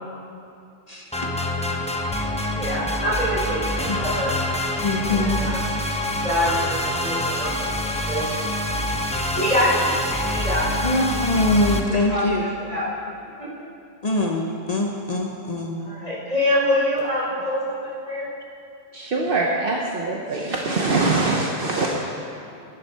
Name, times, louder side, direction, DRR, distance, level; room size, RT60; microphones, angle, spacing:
voice 1, 0.9-1.3 3.9-4.0 4.8-5.4 10.8-12.4 14.0-15.8, left 2 dB, 40° left, 0 dB, 0.9 m, -23 dB
sound 1, 1.1-11.8, left 1 dB, 10° left, 0.6 m, -26 dB
voice 2, 2.5-4.3 5.1-5.6 6.2-8.3 9.3-10.0 10.2-10.8 12.1-12.2 12.7-12.9 13.4-13.5 15.9-18.3, left 1 dB, 40° right, -7 dB, 3.5 m, -25 dB
voice 3, 18.9-22.1, right 3 dB, 60° right, -1 dB, 1.0 m, -23 dB
10.5 x 10.0 x 5.5 m, 2.6 s
omnidirectional pair, 1.1 m